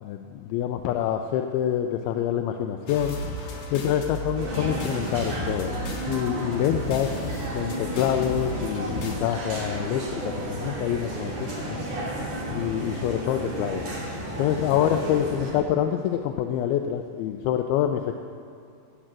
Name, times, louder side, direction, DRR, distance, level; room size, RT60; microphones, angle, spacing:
voice 1, 0.0-3.2 3.7-5.7 6.1-7.1 7.5-11.5 12.5-13.8 14.4-18.1, left 10 dB, 80° left, 5 dB, 2.3 m, -26 dB
sound 1, 2.9-9.2, equal, 65° left, 3.4 m, -35 dB
sound 2, 4.4-15.5, right 1 dB, 45° right, 3.8 m, -32 dB
16.5 x 9.3 x 7.5 m, 2.6 s
omnidirectional pair, 4.7 m